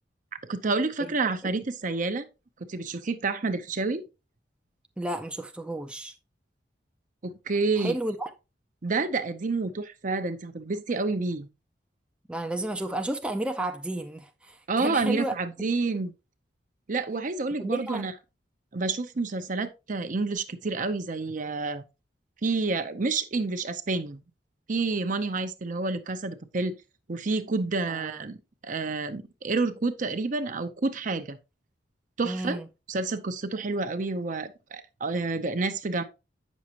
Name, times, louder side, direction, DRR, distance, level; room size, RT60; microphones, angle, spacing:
voice 1, 0.5-2.3 2.7-4.0 7.2-8.0 8.8-11.5 14.7-16.1 16.9-18.1 18.7-21.8 22.4-24.2 24.7-26.8 27.1-28.4 28.6-31.4 32.2-32.6 32.9-36.0, right 3 dB, 45° right, 0.7 m, -29 dB
voice 2, 5.0-6.1 7.8-8.3 12.3-15.3 15.6-15.7 17.6-18.1 27.9-28.2 32.2-32.7, right 1 dB, 5° right, 0.5 m, -32 dB
8.3 x 6.3 x 2.9 m
head